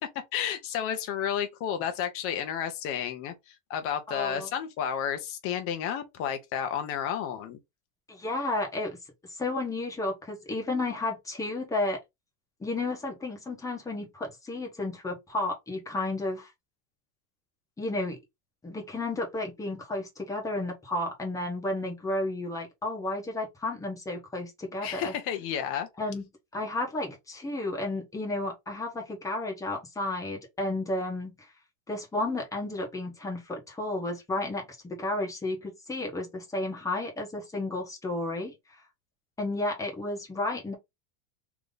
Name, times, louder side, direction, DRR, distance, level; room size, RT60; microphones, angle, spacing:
voice 1, 0.3-3.3 3.7-7.6 24.8-25.9, left 9 dB, 35° left, 1.0 m, -31 dB
voice 2, 4.1-4.5 8.1-9.0 9.3-12.0 12.6-16.5 17.8-18.2 18.6-25.1 26.0-26.2 26.5-31.5 31.9-38.5 39.4-40.7, left 2 dB, 10° left, 1.2 m, -32 dB
3.5 x 3.0 x 3.9 m
supercardioid pair, 160°, 39 cm